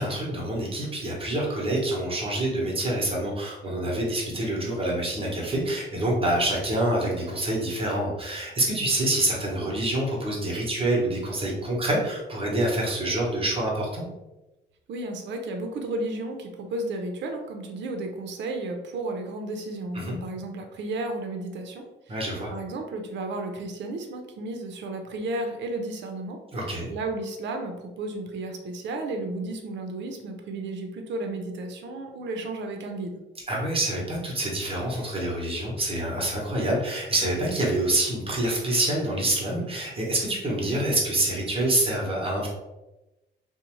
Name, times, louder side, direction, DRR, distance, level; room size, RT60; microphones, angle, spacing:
voice 1, 0.0-14.0 19.9-20.1 22.1-22.5 26.5-26.9 33.5-42.5, right 1 dB, 30° right, -3 dB, 0.9 m, -26 dB
voice 2, 14.9-22.2 22.5-26.4 26.9-33.2, right 2 dB, 65° right, 4 dB, 0.5 m, -33 dB
2.6 x 2.1 x 2.9 m, 1.0 s
cardioid pair, 90°, 20 cm